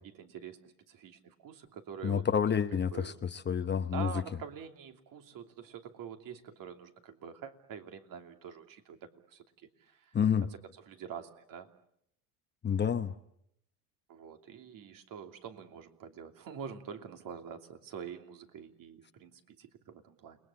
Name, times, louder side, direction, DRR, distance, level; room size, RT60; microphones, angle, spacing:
voice 1, 0.0-2.3 2.9-3.2 3.9-9.4 9.8-11.7 14.1-20.4, right 7 dB, 50° right, 6 dB, 2.9 m, -46 dB
voice 2, 2.0-4.1 10.1-10.5 12.6-13.1, left 7 dB, 25° left, 10 dB, 1.0 m, -29 dB
29.5 x 20.5 x 8.6 m, 0.75 s
supercardioid pair, 115°, 42 cm